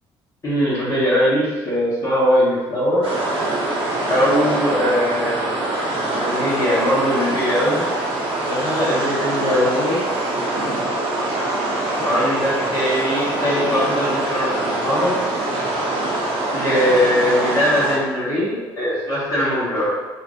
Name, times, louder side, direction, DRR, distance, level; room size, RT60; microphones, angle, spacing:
voice 1, 0.4-3.0 4.1-5.4 6.1-8.2 8.4-10.0 12.0-15.1 16.5-19.9, equal, 35° left, -11 dB, 1.4 m, -21 dB
sound 1, 3.0-18.0, right 2 dB, 75° right, 1.0 m, -24 dB
4.3 x 2.5 x 2.6 m, 1.3 s
cardioid pair, 85°, 9 cm